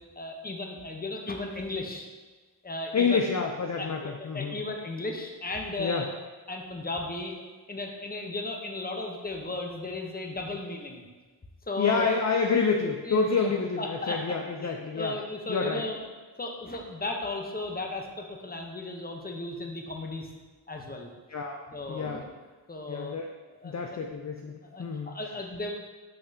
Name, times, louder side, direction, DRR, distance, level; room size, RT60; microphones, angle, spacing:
voice 1, 0.2-2.1 2.6-3.2 3.8-6.1 6.5-7.4 7.7-11.0 11.7-12.1 13.0-14.2 14.6-16.0 16.4-20.3 20.7-21.1 21.7-22.2 22.7-23.1 23.6-24.0 24.7-25.7, left 2 dB, 20° left, 2 dB, 0.9 m, -35 dB
voice 2, 2.9-4.6 5.8-6.1 11.8-15.1 15.5-15.8 21.3-21.6 21.9-22.2 22.9-23.3 23.6-25.1, left 5 dB, 40° left, 2 dB, 0.5 m, -28 dB
6.6 x 5.9 x 2.8 m, 1.3 s
wide cardioid pair, 80°, 42 cm